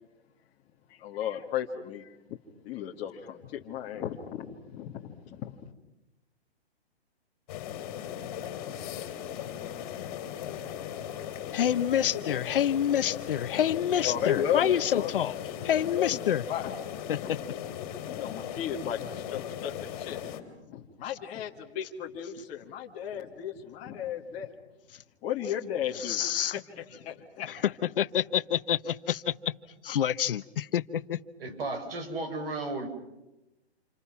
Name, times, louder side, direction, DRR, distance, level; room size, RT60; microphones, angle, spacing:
voice 1, 0.9-2.1 2.6-5.7 14.0-15.1 15.8-16.2 16.5-16.7 17.2-17.3 18.0-20.2 20.7-24.5 25.2-26.2 26.8-27.5, left 9 dB, 20° left, -1 dB, 1.7 m, -34 dB
sound 1, 7.5-20.4, left 10 dB, 35° left, 3.2 m, -38 dB
voice 2, 11.5-15.3 15.6-16.4 17.1-17.4 25.9-26.6 27.5-29.5 29.8-31.2, left 10 dB, 55° left, 14 dB, 1.2 m, -27 dB
voice 3, 31.4-32.9, right 2 dB, 60° right, 7 dB, 6.2 m, -34 dB
29.5 x 28.5 x 6.0 m, 0.94 s
hypercardioid pair, 155°, 33 cm